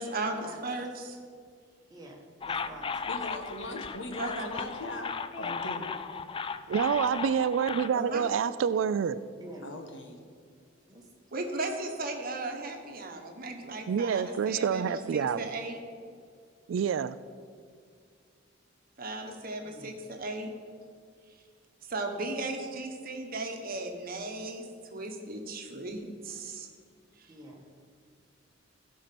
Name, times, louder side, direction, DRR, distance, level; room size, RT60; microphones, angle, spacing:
voice 1, 0.0-0.4 0.6-1.1 4.2-4.5 7.9-8.3 11.3-15.8 19.0-20.5 21.8-26.7 27.2-27.3, right 2 dB, 50° right, 4 dB, 1.3 m, -36 dB
voice 2, 1.9-3.2 9.4-9.7 10.9-11.1 16.9-17.0 19.6-19.9 27.3-27.7, right 1 dB, 20° right, -1 dB, 1.6 m, -48 dB
sound 1, 2.4-7.9, left 5 dB, 25° left, 0.3 m, -36 dB
voice 3, 3.1-5.9 9.6-10.3, left 1 dB, 65° left, 4 dB, 1.3 m, -39 dB
voice 4, 6.7-9.2 13.9-15.5 16.7-17.2, right 7 dB, 70° right, 15 dB, 0.3 m, -27 dB
15.5 x 5.6 x 5.9 m, 2.1 s
head